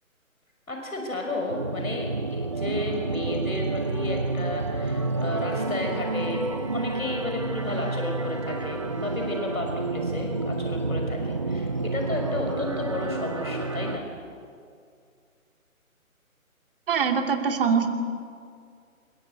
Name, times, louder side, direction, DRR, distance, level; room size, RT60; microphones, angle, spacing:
voice 1, 0.7-6.4 6.7-14.1, left 1 dB, 70° left, 2 dB, 5.9 m, -32 dB
sound 1, 1.5-14.0, right 3 dB, 20° right, 0.6 m, -29 dB
voice 2, 16.9-17.9, right 6 dB, 40° right, 4 dB, 2.8 m, -23 dB
27.5 x 22.5 x 8.3 m, 2.3 s
figure-of-eight pair, 145°, 43 cm